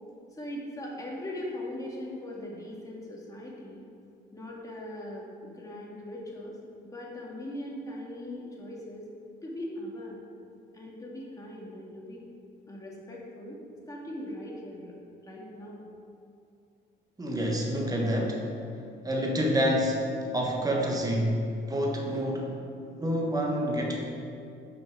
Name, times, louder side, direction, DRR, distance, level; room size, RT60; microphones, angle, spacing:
voice 1, 0.3-3.8 4.3-6.6 6.8-9.1 9.4-10.2 10.7-12.2 12.7-14.9 15.2-15.8, left 1 dB, 15° left, -4 dB, 1.8 m, -40 dB
voice 2, 17.2-18.4 19.0-20.0 20.3-21.4 21.7-24.0, equal, 20° right, -1 dB, 1.2 m, -28 dB
5.8 x 5.7 x 5.2 m, 2.5 s
cardioid pair, 90°, 20 cm